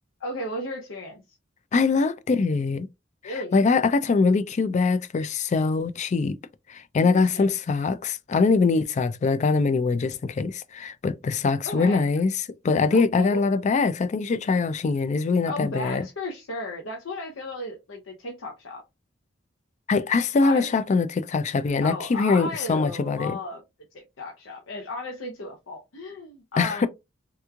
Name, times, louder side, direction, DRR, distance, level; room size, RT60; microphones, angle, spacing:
voice 1, 0.2-1.2 3.2-3.8 7.1-7.5 11.6-12.0 12.9-13.4 15.5-18.8 20.4-20.7 21.8-23.6 23.9-26.9, left 2 dB, 80° left, 0.7 m, -35 dB
voice 2, 1.7-2.9 3.2-6.4 6.7-12.3 12.6-16.1 19.9-23.4 26.6-26.9, left 4 dB, 35° left, 0.3 m, -23 dB
3.4 x 3.0 x 2.3 m
head